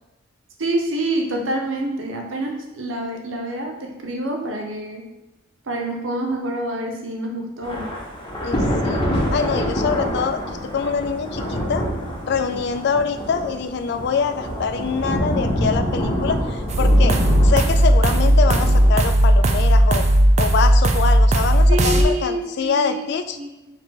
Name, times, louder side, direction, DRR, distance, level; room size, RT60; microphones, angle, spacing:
voice 1, 0.6-5.0 5.7-8.0 21.7-23.1 23.4-23.8, right 1 dB, 75° right, 2 dB, 0.8 m, -27 dB
Thunder / Rain, 7.6-18.9, equal, 25° left, 0.9 m, -26 dB
voice 2, 8.4-11.8 12.2-20.1 20.4-23.4, left 6 dB, 55° left, 9 dB, 0.3 m, -25 dB
sound 1, 16.7-22.0, right 1 dB, 35° right, 0.4 m, -15 dB
4.8 x 2.9 x 3.6 m, 1.0 s
head